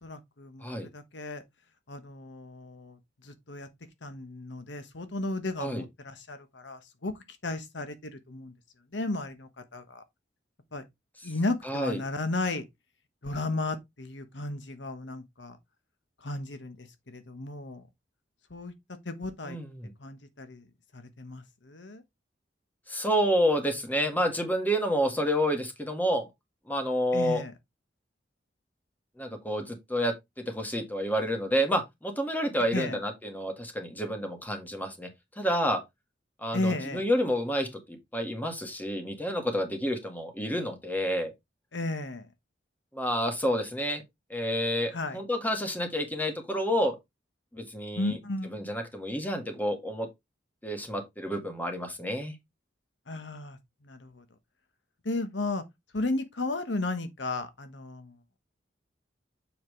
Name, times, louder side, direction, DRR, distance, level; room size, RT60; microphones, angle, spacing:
voice 1, 0.0-1.4 1.9-3.0 3.2-3.7 4.0-7.1 7.4-8.5 8.9-10.0 10.7-10.8 11.2-12.6 13.2-15.6 16.2-17.8 18.5-18.7 19.0-19.6 20.0-20.6 20.9-22.0 27.1-27.5 32.7-33.0 36.5-37.0 41.7-42.3 44.9-45.2 48.0-48.5 53.1-53.6 53.8-54.2 55.0-55.6 55.9-58.1, left 2 dB, 75° left, 1.2 m, -34 dB
voice 2, 11.6-12.0 19.4-19.9 22.9-26.3 26.7-27.4 29.2-30.1 30.5-35.1 35.4-35.8 36.4-41.3 42.9-44.0 44.3-47.0 47.5-48.2 48.5-50.1 50.6-52.3, equal, 10° left, 1.8 m, -29 dB
7.1 x 5.8 x 3.2 m
head